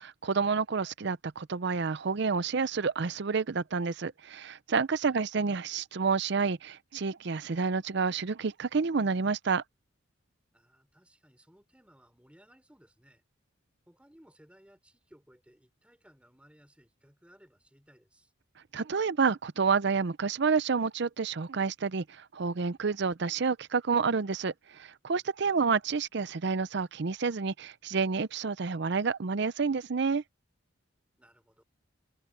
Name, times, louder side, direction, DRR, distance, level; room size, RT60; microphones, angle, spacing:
voice 1, 0.0-9.6 18.7-30.2, right 5 dB, 60° right, 0.6 m, -29 dB
voice 2, 10.5-13.2 13.9-18.3 25.4-25.7 31.2-31.6, equal, 5° right, 4.1 m, -60 dB
head